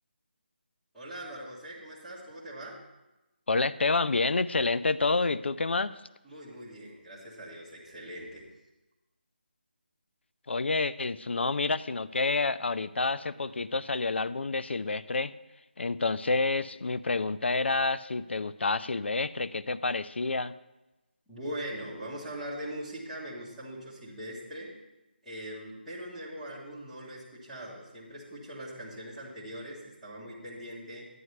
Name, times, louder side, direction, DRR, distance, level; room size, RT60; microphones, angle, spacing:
voice 1, 0.9-2.8 6.2-8.5 21.3-24.7 25.2-31.1, right 1 dB, ahead, -11 dB, 1.2 m, -41 dB
voice 2, 3.5-6.0 10.5-15.3 15.8-20.5, left 3 dB, 85° left, 15 dB, 0.4 m, -28 dB
11.0 x 9.3 x 3.2 m, 1.0 s
figure-of-eight pair, 175°, 6 cm